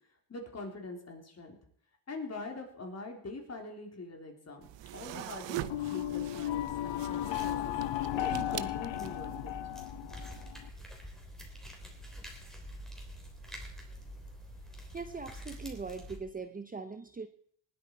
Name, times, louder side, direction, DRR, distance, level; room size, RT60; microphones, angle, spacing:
voice 1, 0.3-1.6 2.1-9.5, left 3 dB, 35° left, 2 dB, 3.7 m, -44 dB
sound 1, 4.6-9.4, right 15 dB, 65° right, 0.8 m, -42 dB
sound 2, 5.6-10.7, left 13 dB, 70° left, 0.7 m, -35 dB
sound 3, 7.4-16.2, equal, ahead, 3.5 m, -46 dB
voice 2, 14.9-17.3, right 4 dB, 20° right, 8 dB, 0.9 m, -41 dB
19.0 x 9.0 x 4.7 m, 0.63 s
cardioid pair, 115°, 46 cm